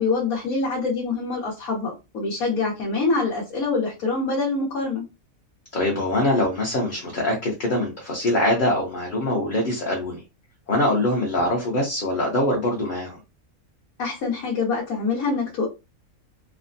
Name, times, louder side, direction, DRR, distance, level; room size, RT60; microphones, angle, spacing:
voice 1, 0.0-5.0 14.0-15.7, left 4 dB, 85° left, -4 dB, 1.3 m, -25 dB
voice 2, 5.7-10.2 10.7-13.2, left 1 dB, 45° left, -2 dB, 0.7 m, -23 dB
3.3 x 2.0 x 2.5 m, 0.26 s
omnidirectional pair, 1.5 m